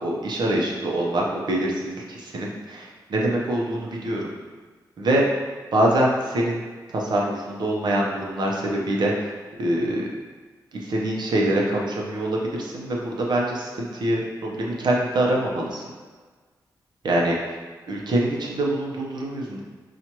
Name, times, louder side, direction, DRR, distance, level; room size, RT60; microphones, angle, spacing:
voice 1, 0.0-4.3 5.0-5.2 5.7-6.6 6.9-9.3 9.6-10.1 10.9-15.8 17.0-17.4 17.9-19.6, right 1 dB, 70° right, -2 dB, 0.7 m, -24 dB
4.5 x 2.4 x 2.9 m, 1.4 s
cardioid pair, 65°, 8 cm